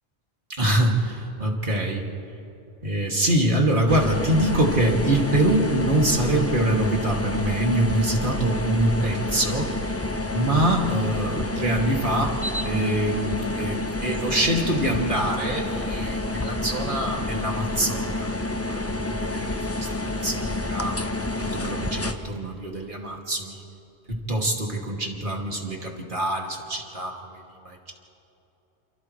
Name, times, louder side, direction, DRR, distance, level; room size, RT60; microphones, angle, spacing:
voice 1, 0.6-2.0 2.8-9.7 10.3-12.4 12.6-21.0 21.4-23.6 24.1-27.9, right 1 dB, 50° right, 0 dB, 2.7 m, -25 dB
sound 1, 3.9-22.1, left 2 dB, 15° left, 0.9 m, -29 dB
28.5 x 28.5 x 3.3 m, 2.9 s
omnidirectional pair, 1.1 m